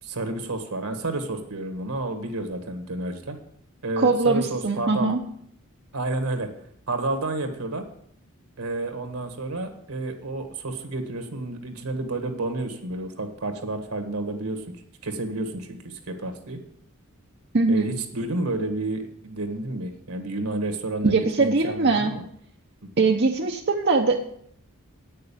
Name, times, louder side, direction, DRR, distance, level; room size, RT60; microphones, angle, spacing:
voice 1, 0.0-3.4 3.8-5.1 5.9-6.5 6.9-7.8 8.6-14.6 15.0-16.6 17.7-22.2, right 2 dB, 80° right, 7 dB, 1.7 m, -30 dB
voice 2, 4.0-5.2 17.5-17.9 21.0-22.1 23.0-24.2, right 3 dB, 50° right, 1 dB, 0.9 m, -21 dB
9.2 x 6.6 x 8.6 m, 0.68 s
head